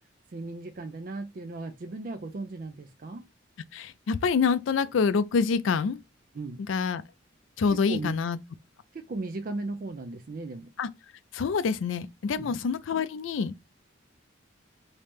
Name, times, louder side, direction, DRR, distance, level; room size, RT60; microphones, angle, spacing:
voice 1, 0.3-3.3 6.3-6.6 7.7-8.1 8.9-10.7 12.3-12.6, right 2 dB, 45° right, 0.4 m, -37 dB
voice 2, 3.7-6.0 6.6-7.0 7.6-8.4 10.8-10.9 11.3-13.5, left 5 dB, 75° left, 0.4 m, -26 dB
3.1 x 2.8 x 3.3 m
head